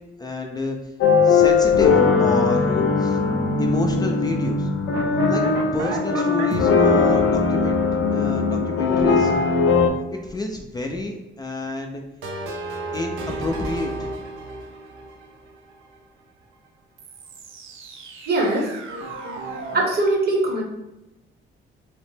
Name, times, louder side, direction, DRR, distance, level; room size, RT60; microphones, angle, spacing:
voice 1, 0.2-0.8 1.2-3.2 3.6-4.7 5.3-5.4 5.7-7.8 8.1-9.3 10.1-12.0 12.9-14.1, left 2 dB, 20° left, 2 dB, 0.3 m, -29 dB
sound 1, 1.0-9.9, left 4 dB, 75° left, 0.5 m, -19 dB
sound 2, 4.9-9.0 12.2-16.0 17.0-19.9, right 3 dB, 85° right, 0.5 m, -34 dB
voice 2, 18.3-18.7 19.7-20.6, right 2 dB, 55° right, 0 dB, 0.9 m, -21 dB
2.8 x 2.1 x 3.2 m, 0.94 s
cardioid pair, 90°, 20 cm